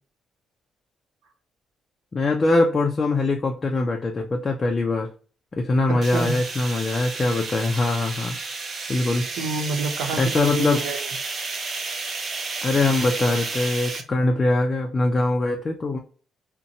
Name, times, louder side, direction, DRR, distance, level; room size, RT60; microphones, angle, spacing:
voice 1, 2.1-5.1 5.6-8.3 8.9-9.3 10.2-10.8 12.6-16.0, left 2 dB, 30° left, 0.5 m, -22 dB
voice 2, 5.9-6.4 9.4-11.1, right 3 dB, 90° right, 0.7 m, -28 dB
sound 1, 6.0-14.0, right 4 dB, 45° right, 0.6 m, -31 dB
2.6 x 2.2 x 2.8 m
cardioid pair, 90°, 0 cm